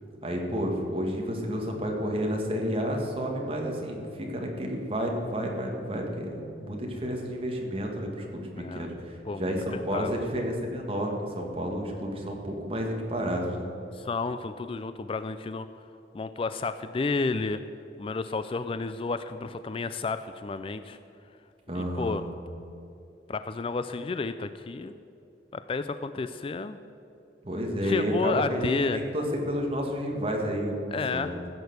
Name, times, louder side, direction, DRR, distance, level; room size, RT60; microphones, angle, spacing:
voice 1, 0.2-13.7 21.7-22.2 27.4-30.8 31.1-31.4, equal, 30° right, 1 dB, 1.9 m, -31 dB
voice 2, 8.5-8.9 9.3-10.1 13.9-15.7 16.1-17.6 18.0-21.0 21.7-22.2 23.3-24.9 25.5-26.8 27.8-29.0 30.9-31.3, left 3 dB, 30° left, 11 dB, 0.3 m, -31 dB
15.0 x 6.7 x 8.0 m, 2.7 s
head